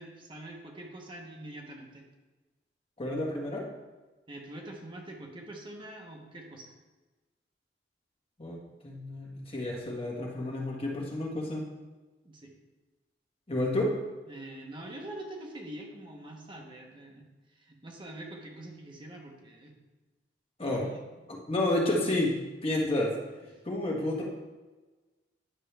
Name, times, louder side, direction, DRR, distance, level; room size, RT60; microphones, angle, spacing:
voice 1, 0.0-2.0 4.3-6.7 12.2-12.5 14.3-19.7 20.8-21.0, right 1 dB, 30° right, 0 dB, 1.1 m, -44 dB
voice 2, 3.0-3.7 8.4-8.6 8.8-11.6 13.5-13.9 20.6-20.9 21.3-22.4 22.6-23.1 23.6-24.2, left 1 dB, 35° left, -1 dB, 1.6 m, -30 dB
10.0 x 6.6 x 3.4 m, 1.2 s
head